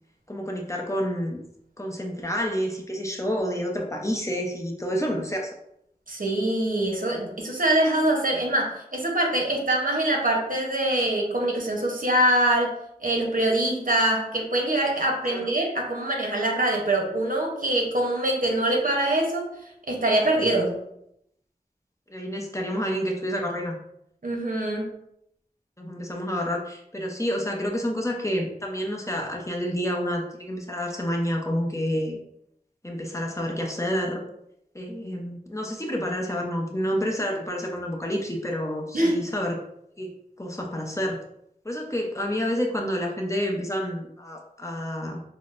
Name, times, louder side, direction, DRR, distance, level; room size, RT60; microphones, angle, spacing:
voice 1, 0.3-1.4 1.8-5.6 15.3-15.5 22.1-23.8 25.8-32.2 32.8-34.2 34.7-39.6 40.0-41.2 41.6-45.2, equal, 20° left, 0 dB, 0.6 m, -29 dB
voice 2, 6.1-19.5 19.9-20.8 24.2-24.9 38.9-39.2, right 1 dB, 65° right, 0 dB, 0.9 m, -24 dB
6.0 x 2.0 x 2.5 m, 0.76 s
wide cardioid pair, 45°, 15 cm